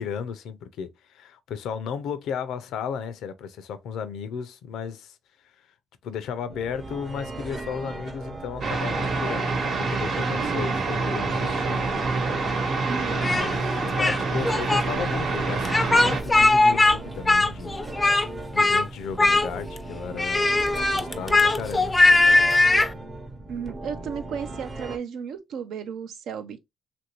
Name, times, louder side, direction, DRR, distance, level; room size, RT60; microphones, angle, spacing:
voice 1, 0.0-5.2 6.0-11.9 13.0-17.7 18.1-18.3 18.5-22.0, left 7 dB, 80° left, 0.5 m, -34 dB
sound 1, 6.5-25.0, right 2 dB, 30° right, 0.7 m, -38 dB
sound 2, 8.6-16.2, right 3 dB, 60° right, 1.0 m, -26 dB
voice 2, 10.3-10.8 12.8-13.4 23.5-26.6, right 7 dB, 80° right, 0.6 m, -34 dB
Speech, 13.2-14.2 14.4-14.8 15.6-17.0 17.2-18.3 18.6-18.8 19.2-19.8 20.2-22.9, left 2 dB, 20° left, 0.4 m, -20 dB
3.0 x 2.6 x 2.9 m
cardioid pair, 90°, 0 cm